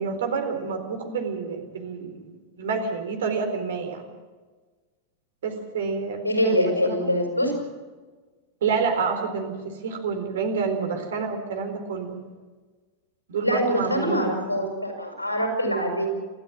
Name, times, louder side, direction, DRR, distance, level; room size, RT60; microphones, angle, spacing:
voice 1, 0.0-4.1 5.4-7.1 8.6-12.2 13.3-14.5, right 5 dB, 60° right, 6 dB, 4.2 m, -28 dB
voice 2, 6.2-7.5 13.4-16.1, equal, 90° left, 3 dB, 6.3 m, -24 dB
29.0 x 13.5 x 7.5 m, 1.4 s
figure-of-eight pair, 90°, 0 cm